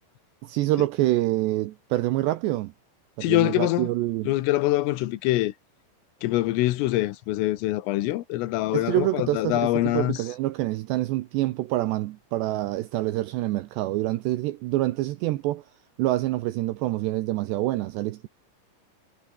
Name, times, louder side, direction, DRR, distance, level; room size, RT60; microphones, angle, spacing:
voice 1, 0.4-2.7 3.2-4.3 8.7-15.6 16.0-18.3, right 16 dB, 80° right, 2.6 m, -26 dB
voice 2, 3.2-3.9 4.3-5.5 6.2-10.2, left 16 dB, 80° left, 3.8 m, -24 dB
omnidirectional pair, 5.9 m